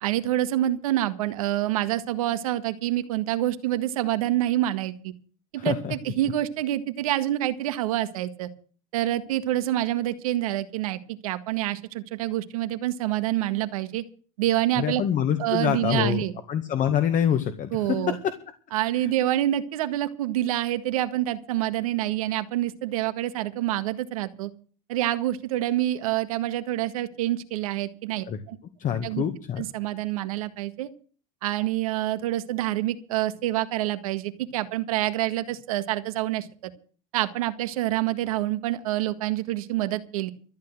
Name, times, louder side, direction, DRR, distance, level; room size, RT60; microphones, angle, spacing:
voice 1, 0.0-5.1 5.5-8.5 8.9-14.0 14.4-15.0 15.4-16.3 17.7-18.2 18.7-24.5 24.9-28.6 29.0-29.2 29.6-30.9 31.4-36.7 37.1-40.3, right 14 dB, 85° right, 11 dB, 1.7 m, -27 dB
voice 2, 5.6-5.9 14.8-18.3 19.0-19.1 28.3-28.4 28.8-29.6, left 9 dB, 45° left, 7 dB, 2.0 m, -26 dB
14.0 x 8.7 x 7.8 m, 0.41 s
supercardioid pair, 90°, 18 cm